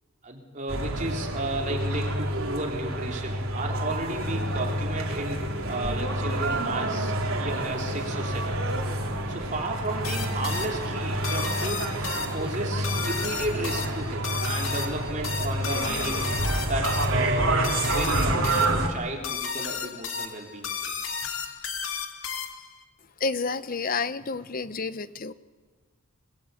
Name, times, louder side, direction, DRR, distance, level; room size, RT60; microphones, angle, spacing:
voice 1, 0.2-7.1 7.4-8.6 9.3-11.9 12.3-16.3 16.7-20.8, right 2 dB, 35° right, 0 dB, 3.7 m, -33 dB
sound 1, 0.7-18.9, right 1 dB, 75° right, 3.0 m, -28 dB
sound 2, 3.9-13.5, left 1 dB, 25° left, 2.8 m, -42 dB
sound 3, 10.0-22.8, left 6 dB, 70° left, 2.1 m, -34 dB
voice 2, 23.2-25.3, left 4 dB, 40° left, 14 dB, 0.7 m, -30 dB
27.5 x 21.0 x 8.4 m, 1.4 s
head